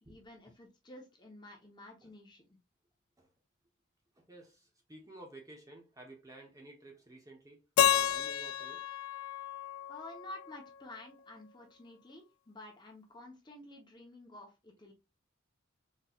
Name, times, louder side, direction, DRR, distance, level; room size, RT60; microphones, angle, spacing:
voice 1, 0.1-2.5 9.9-14.9, left 1 dB, 20° left, 0.8 m, -51 dB
voice 2, 4.2-8.8, right 2 dB, 15° right, 1.0 m, -53 dB
Keyboard (musical), 7.8-10.7, left 10 dB, 90° left, 0.4 m, -31 dB
4.2 x 3.1 x 2.3 m
head